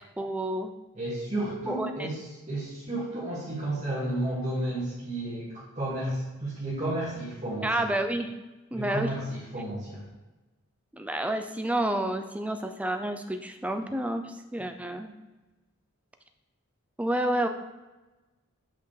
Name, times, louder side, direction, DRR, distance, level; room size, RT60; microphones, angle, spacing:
voice 1, 0.2-0.7 1.7-2.1 7.6-8.3 8.7-9.1 10.9-15.1 17.0-17.5, right 1 dB, 5° right, 6 dB, 0.4 m, -29 dB
voice 2, 0.9-2.2 2.5-7.9 8.7-10.0, right 1 dB, 30° right, -11 dB, 2.0 m, -32 dB
7.6 x 5.8 x 3.3 m, 1.1 s
head